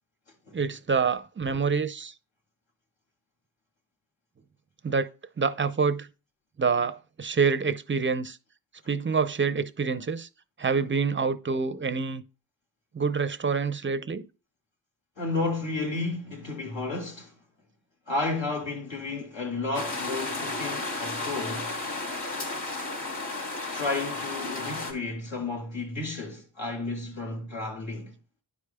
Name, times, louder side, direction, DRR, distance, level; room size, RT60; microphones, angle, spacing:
voice 1, 0.5-2.1 4.8-5.1 5.4-6.1 6.6-8.4 8.9-10.3 10.6-12.2 12.9-14.2, right 5 dB, 25° right, 0.6 m, -26 dB
voice 2, 15.2-17.3 18.1-21.7 23.7-28.1, left 3 dB, 65° left, 2.5 m, -32 dB
sound 1, 19.7-24.9, left 2 dB, 40° left, 2.9 m, -33 dB
10.5 x 4.9 x 2.2 m
cardioid pair, 50°, 47 cm